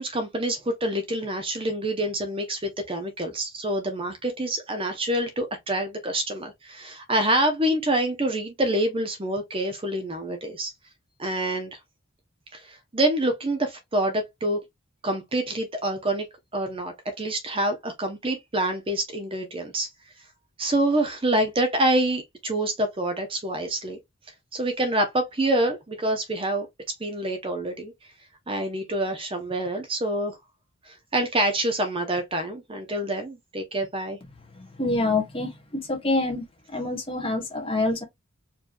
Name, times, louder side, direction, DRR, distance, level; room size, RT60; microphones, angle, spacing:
voice 1, 0.0-10.7 11.2-11.8 12.5-14.6 15.0-16.3 16.5-19.9 20.6-24.0 24.5-26.7 27.0-27.9 28.5-30.4 30.9-34.2, right 1 dB, 25° right, 0.7 m, -26 dB
voice 2, 34.8-36.5 36.7-38.0, left 2 dB, 25° left, 1.3 m, -26 dB
4.5 x 3.0 x 2.6 m
head